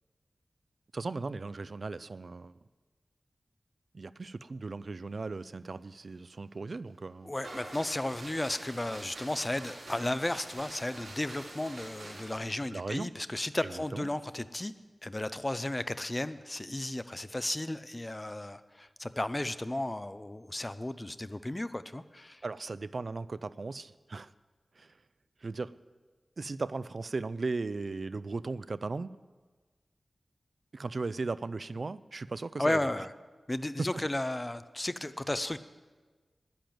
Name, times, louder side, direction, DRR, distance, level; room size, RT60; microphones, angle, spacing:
voice 1, 0.9-2.5 3.9-7.3 12.7-13.1 13.6-14.1 22.4-24.3 24.8-24.9 25.4-25.8 26.4-29.1 30.7-32.8 33.8-34.0, right 3 dB, 55° right, 15 dB, 0.4 m, -37 dB
voice 2, 7.2-14.7 15.0-22.4 32.6-33.1 33.5-35.6, left 1 dB, 20° left, 13 dB, 0.5 m, -34 dB
sound 1, 7.4-12.4, right 2 dB, 75° right, 3.8 m, -46 dB
10.5 x 10.5 x 7.7 m, 1.4 s
wide cardioid pair, 100°, 0 cm